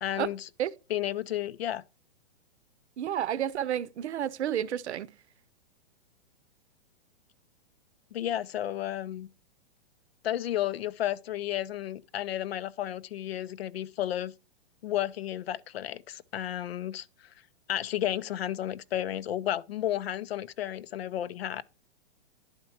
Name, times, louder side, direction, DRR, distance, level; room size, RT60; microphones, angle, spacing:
voice 1, 0.0-0.5 0.9-1.8 8.1-9.3 10.2-14.3 14.8-17.1 17.7-21.6, left 12 dB, 65° left, 0.6 m, -32 dB
voice 2, 3.0-5.1, right 10 dB, 85° right, 0.8 m, -30 dB
10.5 x 4.4 x 5.6 m
hypercardioid pair, 175°, 33 cm